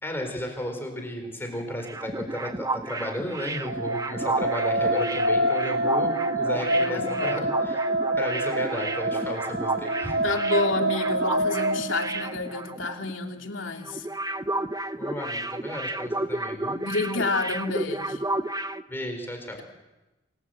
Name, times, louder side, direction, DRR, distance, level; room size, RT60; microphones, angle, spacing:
voice 1, 0.0-7.8 8.2-10.2 15.0-16.8 18.9-19.6, left 1 dB, 10° left, 3 dB, 4.1 m, -34 dB
sound 1, 1.6-13.1 13.4-13.6 13.8-18.8, right 2 dB, 20° right, 0.7 m, -32 dB
sound 2, 3.4-12.7, right 1 dB, 75° right, 2.7 m, -27 dB
voice 2, 6.7-7.5 10.2-14.1 16.8-18.2, left 3 dB, 75° left, 2 dB, 3.0 m, -29 dB
28.5 x 20.0 x 7.8 m, 1.1 s
head